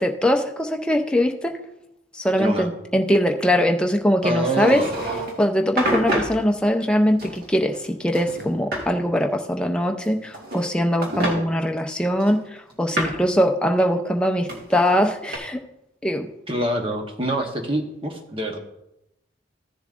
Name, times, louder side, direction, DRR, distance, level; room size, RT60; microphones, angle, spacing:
voice 1, 0.0-1.5 2.1-4.8 5.4-15.6 16.0-16.3, equal, 5° left, 3 dB, 0.5 m, -21 dB
voice 2, 2.4-2.7 4.2-4.9 11.2-11.4 16.5-18.6, right 1 dB, 25° right, 3 dB, 1.0 m, -25 dB
sound 1, 4.6-5.4 5.8-6.4 7.2-7.9 8.1-8.9 10.0-10.7 11.0-11.4 12.2-13.3 14.5-15.4, right 1 dB, 50° right, 1.6 m, -28 dB
14.5 x 7.1 x 2.5 m, 0.86 s
head